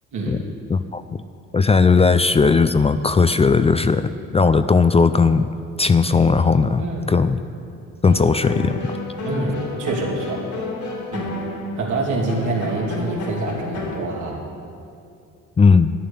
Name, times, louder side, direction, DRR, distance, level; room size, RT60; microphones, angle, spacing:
voice 1, 0.7-1.0 1.5-5.5 5.8-7.4 8.0-9.0 15.6-15.9, left 4 dB, 20° left, 11 dB, 0.4 m, -17 dB
voice 2, 6.8-7.2 9.2-10.4 11.1-11.3 11.8-14.4, right 3 dB, 75° right, -2 dB, 2.8 m, -26 dB
sound 1, 8.0-14.0, left 2 dB, 70° left, 2.8 m, -30 dB
11.5 x 9.6 x 7.0 m, 2.5 s
cardioid pair, 90°, 30 cm